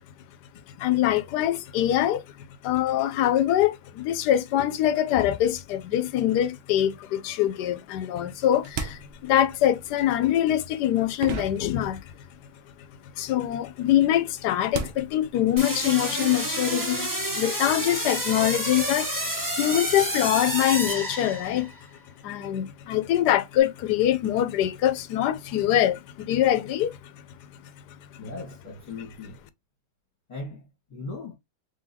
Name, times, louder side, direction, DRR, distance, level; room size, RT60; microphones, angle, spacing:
voice 1, 0.8-2.2 2.6-12.0 13.2-21.7 22.2-27.2 27.6-27.7 28.1-28.2, left 12 dB, 85° left, 1.2 m, -24 dB
sound 1, 8.3-12.4 12.7-16.0, right 5 dB, 60° right, 0.6 m, -38 dB
sound 2, 15.6-21.8, right 1 dB, 15° right, 1.1 m, -29 dB
voice 2, 28.2-29.4 30.3-31.3, left 3 dB, 25° left, 1.4 m, -38 dB
3.8 x 3.3 x 2.8 m
omnidirectional pair, 1.7 m